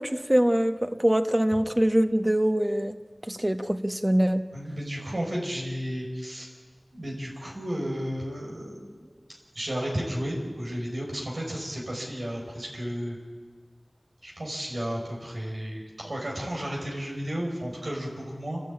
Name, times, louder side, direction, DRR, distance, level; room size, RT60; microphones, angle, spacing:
voice 1, 0.0-3.0 3.2-4.4, right 1 dB, 20° right, 7 dB, 1.2 m, -24 dB
voice 2, 4.5-6.5 6.9-9.1 9.5-13.2 14.2-18.6, equal, 90° right, -2 dB, 5.7 m, -33 dB
29.0 x 13.0 x 8.9 m, 1.4 s
wide cardioid pair, 45°, 0 cm